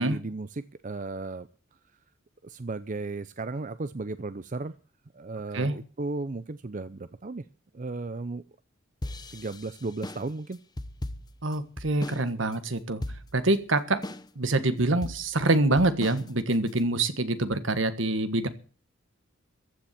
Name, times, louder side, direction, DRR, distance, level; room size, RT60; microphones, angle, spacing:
voice 1, 0.0-1.5 2.4-4.8 5.1-7.4 7.7-8.4 9.3-10.6, right 3 dB, 40° right, 13 dB, 0.6 m, -35 dB
sound 1, 9.0-12.3 12.5-12.6 13.0-13.5 14.0-14.5 15.0-16.8, left 1 dB, 20° left, 0.9 m, -38 dB
voice 2, 11.4-13.0 13.3-14.0 14.3-18.5, right 2 dB, 70° right, 11 dB, 1.5 m, -25 dB
15.0 x 7.1 x 9.2 m, 0.39 s
head